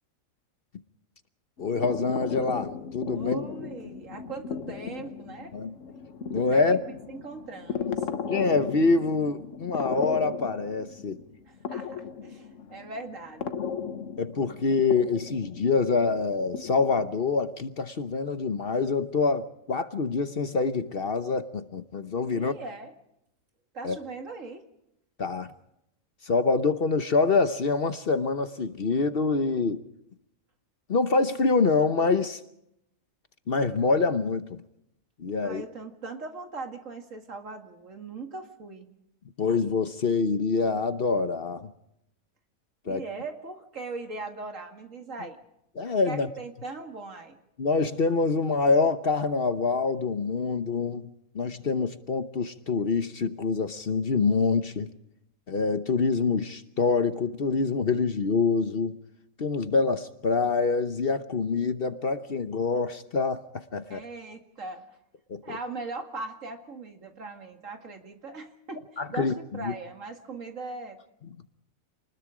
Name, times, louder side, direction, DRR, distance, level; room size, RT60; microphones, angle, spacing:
sound 1, 1.6-17.1, left 6 dB, 65° left, 1.4 m, -36 dB
voice 1, 1.6-3.4 5.5-5.7 6.3-6.8 8.3-11.2 14.2-22.5 23.8-24.0 25.2-25.5 26.2-29.8 30.9-32.4 33.5-34.6 35.2-35.6 39.4-41.7 42.9-43.0 45.2-45.3 45.8-46.3 47.6-51.1 51.3-54.9 55.5-59.0 59.4-63.4 63.7-64.0 65.3-65.6 69.0-69.3 69.6-69.7, left 4 dB, 50° left, 1.0 m, -25 dB
voice 2, 3.1-5.5 6.5-6.8 7.1-8.1 11.5-13.6 22.3-22.9 23.7-24.6 35.4-38.9 42.8-45.4 45.9-47.4 63.9-65.0 65.4-71.0, right 3 dB, 65° right, 2.5 m, -40 dB
28.5 x 20.5 x 5.0 m
omnidirectional pair, 1.4 m